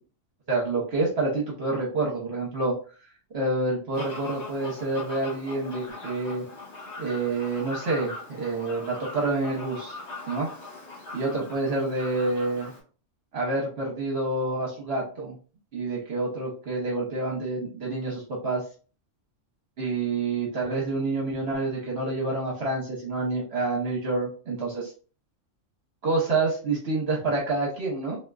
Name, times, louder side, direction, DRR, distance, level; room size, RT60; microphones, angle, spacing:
voice 1, 0.5-2.7 3.3-6.4 7.0-10.0 10.3-10.5 11.1-12.7 13.3-15.4 15.7-18.6 19.8-24.9 26.0-28.2, right 3 dB, 55° right, -3 dB, 1.0 m, -28 dB
Fowl, 3.9-12.8, left 2 dB, 55° left, 1.4 m, -41 dB
3.5 x 2.6 x 2.2 m, 0.38 s
omnidirectional pair, 1.4 m